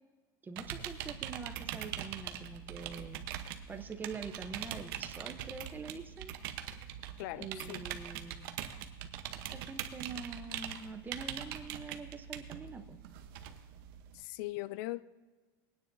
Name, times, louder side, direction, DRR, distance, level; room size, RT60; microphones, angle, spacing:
voice 1, 0.4-3.2 3.7-6.3 7.4-8.6 9.3-13.0, right 4 dB, 15° right, 8 dB, 0.7 m, -45 dB
sound 1, 0.6-14.2, right 10 dB, 75° right, 0.9 m, -42 dB
voice 2, 7.2-7.8 14.1-15.0, left 18 dB, 65° left, 18 dB, 0.4 m, -40 dB
20.5 x 9.6 x 2.6 m, 1.3 s
supercardioid pair, 145°, 12 cm